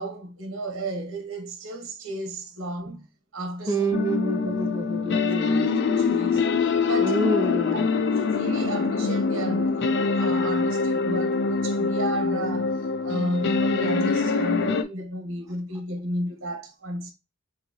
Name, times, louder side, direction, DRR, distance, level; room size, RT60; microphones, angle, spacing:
voice 1, 0.0-3.1 3.3-3.9 4.8-5.2 6.0-6.5 6.8-7.1 7.7-17.1, right 1 dB, 80° right, 1.0 m, -33 dB
voice 2, 3.7-5.7 7.0-7.9, right 2 dB, 15° right, 0.7 m, -27 dB
sound 1, 3.9-14.8, left 4 dB, 55° left, 0.4 m, -24 dB
4.0 x 2.7 x 2.8 m
head